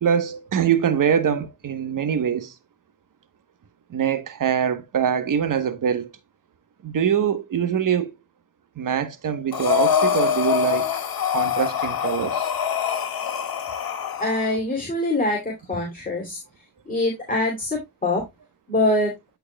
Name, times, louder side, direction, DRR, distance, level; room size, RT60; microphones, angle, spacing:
voice 1, 0.0-2.5 3.9-6.1 6.8-8.1 8.8-11.0 11.3-12.5, right 8 dB, 60° right, 1.2 m, -23 dB
Breathing, 9.5-14.5, left 8 dB, 70° left, 1.7 m, -24 dB
voice 2, 14.2-16.4 16.9-18.2 18.7-19.1, left 2 dB, 25° left, 2.8 m, -24 dB
13.5 x 4.7 x 2.3 m
cardioid pair, 80°, 36 cm